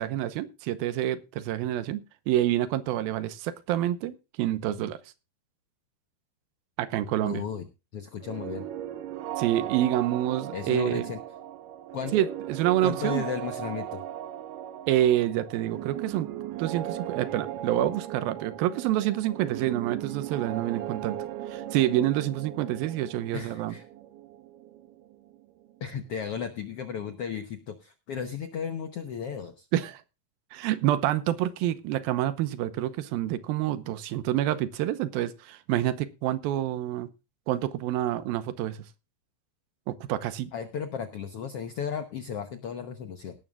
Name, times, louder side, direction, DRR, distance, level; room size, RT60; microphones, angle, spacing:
voice 1, 0.0-5.0 6.8-7.4 9.4-11.1 12.1-13.2 14.9-16.3 16.6-21.2 21.5-23.7 29.7-30.0 30.5-37.1 37.5-38.8 39.9-40.5, right 13 dB, 85° right, 2.7 m, -27 dB
voice 2, 7.2-7.6 7.9-8.7 10.5-11.2 11.9-12.1 12.8-14.0 23.3-23.8 25.8-29.7 40.5-43.3, left 7 dB, 80° left, 1.3 m, -34 dB
sound 1, 8.2-25.9, right 12 dB, 70° right, 2.4 m, -38 dB
18.0 x 13.0 x 2.4 m
omnidirectional pair, 4.2 m